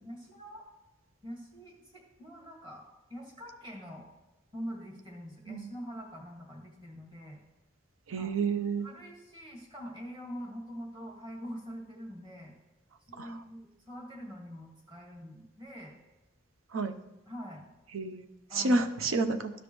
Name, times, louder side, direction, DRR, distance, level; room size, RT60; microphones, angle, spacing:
voice 1, 0.0-0.7 1.2-2.8 3.1-4.1 4.5-7.4 8.2-8.3 8.8-12.5 13.1-15.9 17.3-17.6 18.5-18.9, equal, 25° right, -1 dB, 1.8 m, -44 dB
voice 2, 8.1-8.9 13.2-13.4 16.7-17.0 17.9-18.3 18.5-19.5, right 3 dB, 85° right, 9 dB, 0.7 m, -30 dB
13.0 x 5.2 x 3.1 m, 1.0 s
head